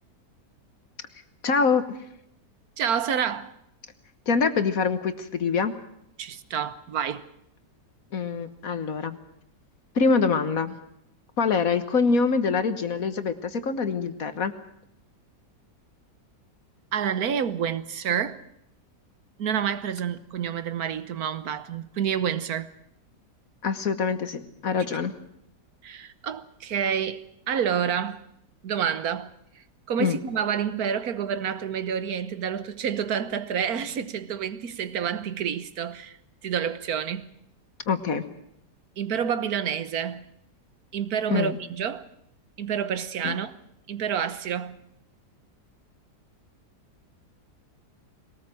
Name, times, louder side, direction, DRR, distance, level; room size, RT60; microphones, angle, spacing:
voice 1, 1.4-1.8 4.3-5.7 8.1-9.2 9.9-10.7 11.4-14.5 23.6-25.1 30.0-30.2 37.9-38.2 41.3-41.6 43.2-43.4, left 5 dB, 55° left, 1.7 m, -24 dB
voice 2, 2.8-3.5 6.2-7.2 16.9-18.4 19.4-22.7 25.8-28.2 28.6-29.3 29.9-36.2 36.4-37.3 39.0-40.2 40.9-42.1 42.6-43.5 43.9-44.8, right 8 dB, 65° right, 1.6 m, -28 dB
22.0 x 18.5 x 7.7 m
omnidirectional pair, 1.8 m